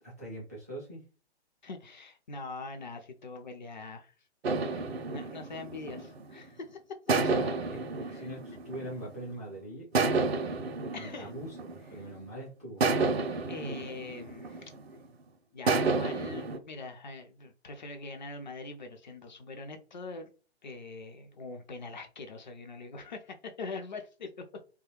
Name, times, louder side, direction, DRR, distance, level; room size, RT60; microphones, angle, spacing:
voice 1, 0.0-1.0 5.9-6.1 7.1-7.8 8.1-10.5 11.0-12.8, right 1 dB, 15° right, -5 dB, 0.3 m, -43 dB
voice 2, 1.6-4.1 4.6-4.8 5.1-7.2 8.0-8.6 10.9-11.4 13.5-14.7 15.5-20.3 20.6-24.5, left 3 dB, 45° left, 5 dB, 0.5 m, -43 dB
sound 1, 4.4-6.5 7.1-9.3 9.9-12.2 12.8-15.0 15.7-16.6, right 3 dB, 65° right, 0.5 m, -31 dB
2.9 x 2.3 x 3.0 m, 0.36 s
figure-of-eight pair, 130°, 34 cm